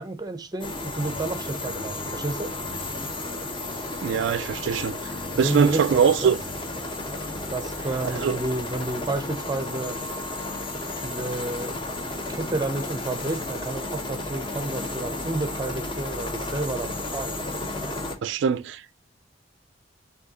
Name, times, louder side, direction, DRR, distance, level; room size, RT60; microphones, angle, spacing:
voice 1, 0.0-2.5 5.3-6.4 7.5-10.0 11.0-11.8 12.3-17.4, right 2 dB, 20° right, 0.6 m, -30 dB
sound 1, 0.6-18.1, left 2 dB, 25° left, 0.9 m, -33 dB
voice 2, 4.0-5.0 5.4-6.4 8.1-8.4 18.2-19.0, right 7 dB, 75° right, 0.3 m, -22 dB
6.3 x 2.8 x 2.8 m
head